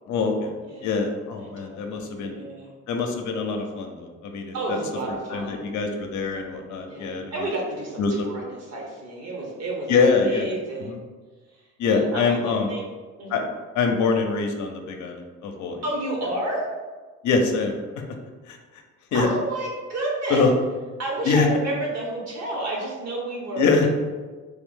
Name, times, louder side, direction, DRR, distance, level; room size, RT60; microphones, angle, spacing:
voice 1, 0.1-0.5 0.8-2.4 2.9-4.8 5.1-7.2 8.0-8.1 9.9-10.5 10.9-11.0 11.8-12.7 13.3-13.4 13.7-15.8 17.2-17.7 18.5-18.6 19.1-19.3 20.3-20.5 21.3-21.5 23.6-23.9, left 4 dB, 75° left, 3 dB, 0.6 m, -24 dB
voice 2, 0.6-1.1 1.4-2.7 4.5-5.6 6.9-11.0 11.5-12.9 13.2-13.4 15.8-16.7 19.1-20.4 21.0-23.8, right 2 dB, 60° right, -2 dB, 1.2 m, -31 dB
3.4 x 2.6 x 3.6 m, 1.4 s
cardioid pair, 90°, 30 cm